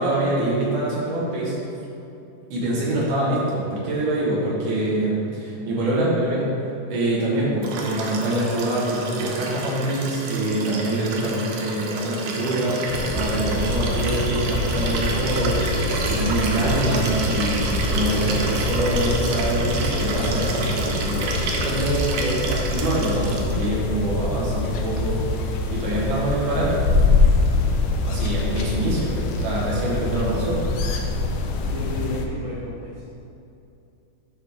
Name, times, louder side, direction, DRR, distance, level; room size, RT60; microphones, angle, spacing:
voice 1, 0.0-1.6 2.5-26.8 28.0-30.6, right 1 dB, 70° right, -5 dB, 3.0 m, -25 dB
Liquid, 7.6-23.7 25.0-25.1, right 3 dB, 85° right, 1.4 m, -29 dB
sound 1, 12.9-32.3, left 3 dB, 80° left, 2.2 m, -25 dB
voice 2, 31.6-33.0, left 1 dB, 55° right, -10 dB, 1.3 m, -33 dB
11.5 x 4.0 x 3.5 m, 2.7 s
omnidirectional pair, 3.9 m